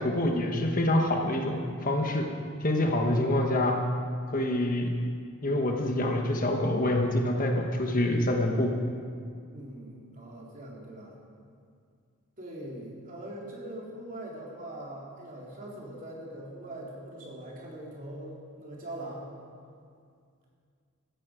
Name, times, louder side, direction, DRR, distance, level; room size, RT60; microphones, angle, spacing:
voice 1, 0.0-2.3 2.6-3.8 4.3-4.9 5.4-8.8, left 1 dB, 40° left, 2 dB, 1.2 m, -26 dB
voice 2, 9.5-11.2 12.4-19.3, right 1 dB, 40° right, -3 dB, 3.4 m, -42 dB
17.0 x 14.0 x 5.1 m, 2.2 s
head